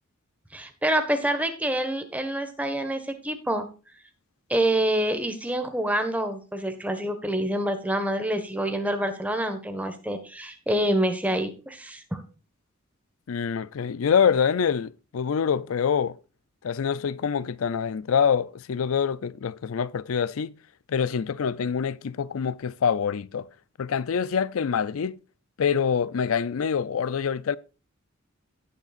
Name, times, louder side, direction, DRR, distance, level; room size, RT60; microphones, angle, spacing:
voice 1, 0.5-3.7 4.5-12.2, right 1 dB, 5° right, 1.4 m, -27 dB
voice 2, 13.3-16.2 16.6-20.6 20.9-23.5 23.8-25.2 25.6-27.6, left 7 dB, 85° left, 0.4 m, -25 dB
17.5 x 6.6 x 2.5 m
head